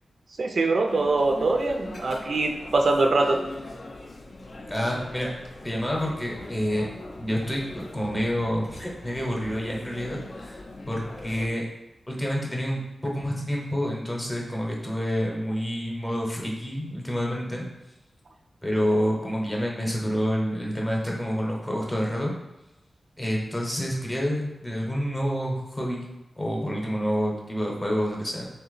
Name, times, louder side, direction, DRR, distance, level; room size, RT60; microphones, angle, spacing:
voice 1, 0.4-3.4, right 3 dB, 60° right, 3 dB, 0.3 m, -23 dB
sound 1, 0.9-11.5, left 2 dB, 50° left, 0.4 m, -41 dB
voice 2, 4.7-5.3 5.6-6.9 7.2-11.7 12.1-17.6 18.6-22.3 23.2-26.1 26.4-28.5, equal, 15° left, -2 dB, 0.7 m, -28 dB
3.3 x 2.8 x 3.9 m, 0.98 s
wide cardioid pair, 140°, 0 cm